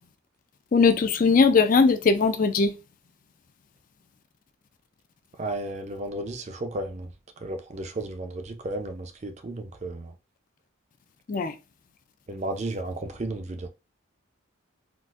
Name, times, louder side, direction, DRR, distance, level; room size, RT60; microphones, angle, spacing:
voice 1, 0.7-2.7 11.3-11.5, left 4 dB, 40° left, 0.4 m, -20 dB
voice 2, 5.4-7.1 7.4-10.1 12.3-13.7, right 2 dB, 35° right, 0.4 m, -33 dB
3.8 x 2.5 x 2.4 m
head